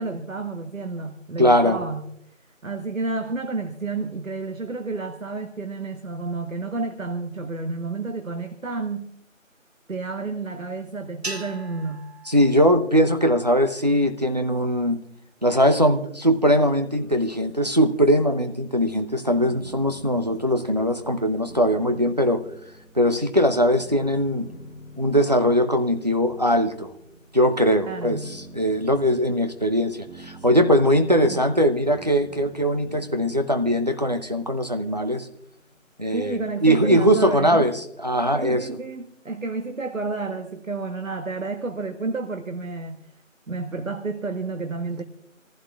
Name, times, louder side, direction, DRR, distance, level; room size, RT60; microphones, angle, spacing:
voice 1, 0.0-2.1 2.6-9.1 9.9-12.1 27.9-28.3 31.2-31.4 36.1-37.7 38.3-43.0 43.5-45.0, right 3 dB, 75° right, 1.3 m, -30 dB
voice 2, 1.4-1.8 12.3-15.0 15.4-22.4 23.0-24.5 25.0-26.9 27.3-35.3 36.0-38.7, equal, 30° right, 0.8 m, -21 dB
sound 1, 11.2-13.7, right 2 dB, 50° right, 1.6 m, -39 dB
sound 2, 16.9-35.9, right 1 dB, ahead, 7.4 m, -47 dB
28.0 x 15.0 x 2.4 m
figure-of-eight pair, 170°, 40 cm